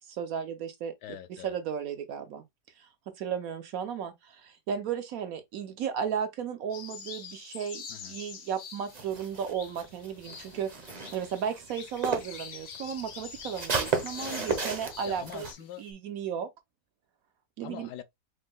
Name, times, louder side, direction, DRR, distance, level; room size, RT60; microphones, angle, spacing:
voice 1, 0.1-0.9 1.4-2.4 2.8-2.9 3.2-10.7 11.1-15.5 15.8-16.5 17.6-17.9, right 7 dB, 70° right, 0.9 m, -34 dB
voice 2, 1.0-1.5 7.9-8.2 14.2-14.5 14.8-15.8 17.6-18.0, left 10 dB, 75° left, 1.2 m, -44 dB
sound 1, 6.7-15.9, left 6 dB, 50° left, 0.7 m, -46 dB
sound 2, 8.9-12.4 12.8-15.5, right 5 dB, 40° right, 0.6 m, -34 dB
5.1 x 2.2 x 3.6 m
omnidirectional pair, 1.8 m